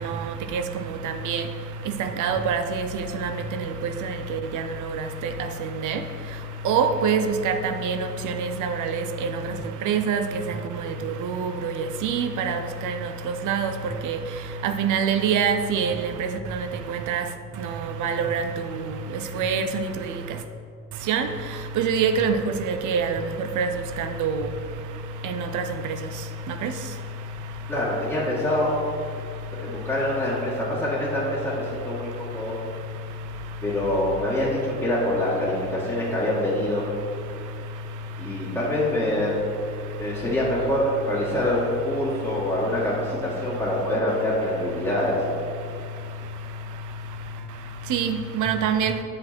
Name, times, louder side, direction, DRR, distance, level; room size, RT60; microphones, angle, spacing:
voice 1, 1.0-1.4 2.0-2.9 3.2-3.3 4.1-4.6 5.8-6.0 6.6-8.0 8.2-9.0 9.9-10.2 11.2-11.7 12.0-13.0 13.5-13.7 14.0-14.2 14.6-15.9 16.5-16.6 16.9-17.2 18.0-18.4 19.4-19.8 21.1-21.3 21.8-22.4 22.7-23.2 23.6-23.7 24.2-24.4 25.2-25.6 26.6-26.7 47.9-49.0, right 6 dB, 80° right, 7 dB, 0.6 m, -24 dB
voice 2, 27.7-28.7 29.6-32.6 33.6-36.8 38.2-39.4 40.0-45.2, left 1 dB, 10° left, -9 dB, 1.7 m, -25 dB
7.2 x 5.1 x 4.3 m, 2.4 s
cardioid pair, 90°, 30 cm